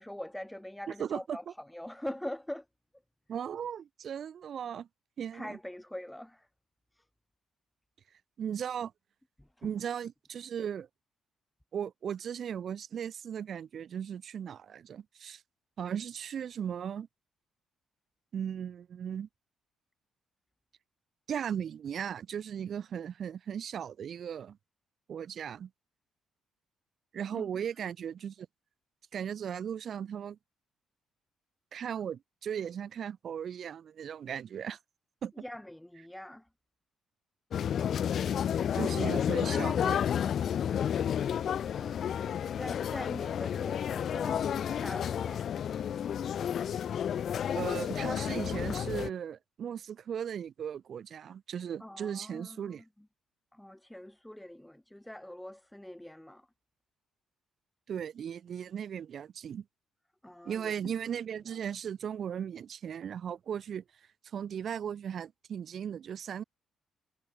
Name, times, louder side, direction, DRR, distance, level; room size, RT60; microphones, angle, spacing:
voice 1, 0.0-2.7 5.3-6.5 7.0-7.1 9.4-9.7 27.3-27.5 35.4-36.5 41.7-45.5 51.8-53.1 53.5-56.5 60.2-60.9 61.5-61.6, left 1 dB, 5° left, 2.0 m, -44 dB
voice 2, 1.0-1.4 3.3-4.9 5.2-5.6 8.4-8.9 9.6-10.9 11.7-15.4 15.8-17.1 18.3-19.3 21.3-24.6 25.1-25.7 27.1-28.5 29.1-30.4 31.7-34.8 35.2-35.3 38.7-40.0 47.5-52.8 57.9-59.6 60.4-63.8 64.3-66.4, right 8 dB, 60° right, 0.9 m, -37 dB
sound 1, 37.5-49.1, left 9 dB, 60° left, 0.5 m, -31 dB
cardioid pair, 90°, 0 cm